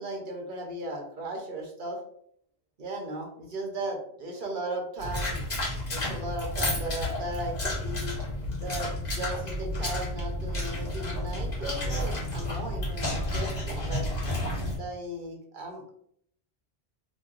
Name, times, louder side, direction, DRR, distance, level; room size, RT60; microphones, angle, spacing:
voice 1, 0.0-2.0 2.8-5.4 5.9-8.1 8.6-14.1 14.8-15.9, right 1 dB, 55° right, 0 dB, 1.0 m, -36 dB
sound 1, 5.0-14.8, left 1 dB, 45° left, 1.2 m, -31 dB
3.0 x 2.2 x 3.8 m, 0.67 s
omnidirectional pair, 1.1 m